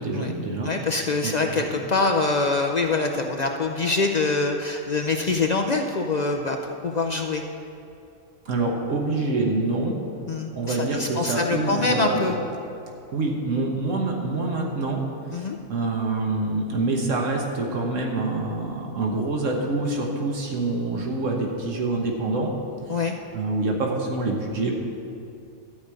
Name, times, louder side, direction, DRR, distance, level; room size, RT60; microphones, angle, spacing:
voice 1, 0.0-0.7 1.2-1.8 8.4-10.0 10.5-12.5 13.1-15.0 15.3-22.5 22.9-23.0 23.3-24.7, right 2 dB, 80° right, 0 dB, 1.5 m, -26 dB
voice 2, 0.6-6.6 6.8-7.4 10.3-12.4 15.3-15.6 22.9-23.2, left 3 dB, 50° left, 3 dB, 0.5 m, -24 dB
12.5 x 5.1 x 8.3 m, 2.6 s
omnidirectional pair, 1.3 m